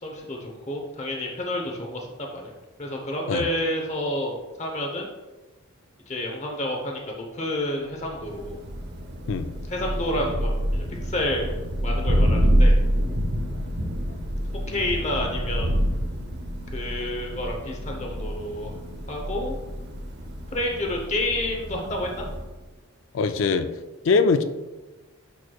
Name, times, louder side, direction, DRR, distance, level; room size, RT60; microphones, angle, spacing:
voice 1, 0.0-2.5 2.8-5.1 6.1-7.0 7.3-8.6 9.7-11.5 11.8-12.8 14.7-15.7 16.7-18.7 19.1-19.6 20.5-22.3, left 1 dB, 30° left, 0 dB, 0.8 m, -29 dB
Thunder, 8.0-22.6, equal, 50° right, 0.7 m, -27 dB
voice 2, 23.1-23.7 24.0-24.4, left 4 dB, 60° left, 9 dB, 0.4 m, -21 dB
10.5 x 4.6 x 2.3 m, 1.2 s
head